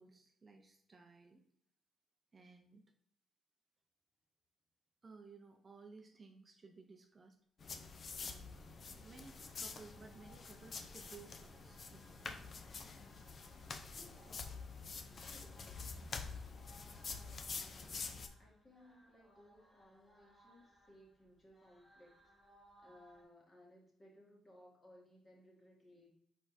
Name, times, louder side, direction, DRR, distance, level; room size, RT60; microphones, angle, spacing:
voice 1, 0.0-1.4 2.3-2.9 5.0-7.4 8.2-12.6, right 4 dB, 35° right, 4 dB, 0.6 m, -58 dB
sound 1, 7.6-18.3, left 4 dB, 45° left, 0.5 m, -47 dB
sound 2, 9.1-23.2, right 1 dB, 10° left, 1.9 m, -68 dB
voice 2, 13.9-14.5 15.2-15.9 17.1-22.1 22.8-26.1, equal, 30° left, -2 dB, 1.7 m, -63 dB
4.6 x 4.2 x 2.7 m, 0.69 s
cardioid pair, 90°, 0 cm